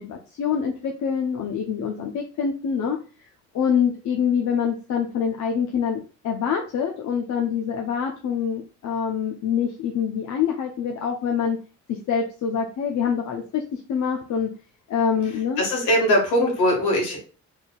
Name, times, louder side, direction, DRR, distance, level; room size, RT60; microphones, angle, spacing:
voice 1, 0.0-3.0 3.5-11.6 11.9-14.5 14.9-15.6, left 7 dB, 70° left, 1 dB, 0.7 m, -25 dB
voice 2, 15.6-17.2, equal, 90° left, 0 dB, 1.7 m, -21 dB
4.3 x 3.5 x 2.3 m, 0.35 s
cardioid pair, 90°, 30 cm